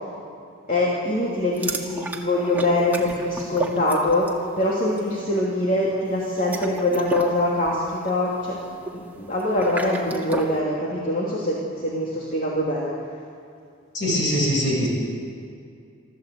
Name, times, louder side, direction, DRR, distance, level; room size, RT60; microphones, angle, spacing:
voice 1, 0.7-8.6 8.9-12.9, left 1 dB, 45° left, -4 dB, 2.9 m, -24 dB
sound 1, 1.5-4.5 4.7-5.1 6.2-10.6, right 3 dB, 10° right, 1.7 m, -33 dB
voice 2, 13.9-14.9, equal, 60° left, -3 dB, 7.7 m, -22 dB
26.5 x 13.5 x 8.2 m, 2.4 s
head